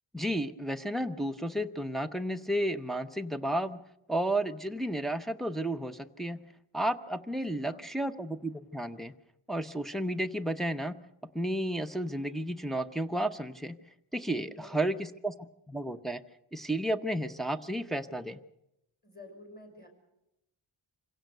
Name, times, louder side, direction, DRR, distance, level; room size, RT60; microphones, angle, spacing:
voice 1, 0.1-3.8 4.1-6.4 6.7-9.1 9.5-11.0 11.3-13.8 14.1-15.3 15.7-16.2 16.5-18.4, right 1 dB, ahead, 5 dB, 0.7 m, -32 dB
voice 2, 7.4-7.9 14.3-14.9 19.0-19.9, left 1 dB, 20° left, 4 dB, 5.1 m, -51 dB
26.5 x 16.5 x 6.7 m, 0.86 s
wide cardioid pair, 150°, 49 cm